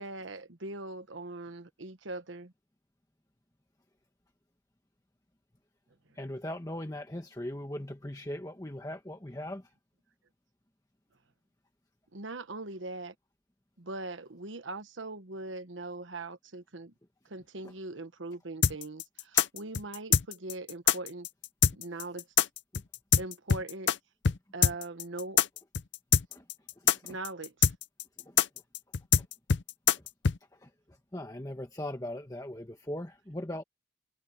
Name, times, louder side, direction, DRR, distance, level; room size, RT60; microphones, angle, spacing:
voice 1, 0.0-2.5 12.1-13.1 13.8-16.9 17.3-21.3 21.7-22.3 23.2-23.9 24.5-25.4 27.0-27.7, right 2 dB, 90° right, 1.3 m, -41 dB
voice 2, 6.1-9.7 19.3-19.5 22.7-22.8 26.3-26.4 26.8-27.2 28.2-28.4 30.5-33.6, left 1 dB, 20° left, 1.3 m, -40 dB
sound 1, 18.6-24.0 24.2-24.4 24.6-30.4, left 8 dB, 75° left, 0.7 m, -24 dB
head